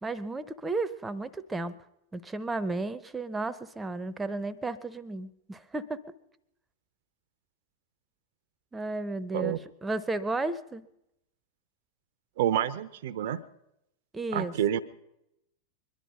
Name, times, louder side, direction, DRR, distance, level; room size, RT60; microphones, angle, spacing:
voice 1, 0.0-1.8 2.1-6.0 8.7-10.9 14.1-14.5, right 2 dB, 10° right, 14 dB, 0.7 m, -33 dB
voice 2, 12.4-13.4 14.3-14.8, right 11 dB, 55° right, 12 dB, 0.7 m, -28 dB
22.5 x 11.0 x 5.5 m, 0.85 s
figure-of-eight pair, 90°, 0 cm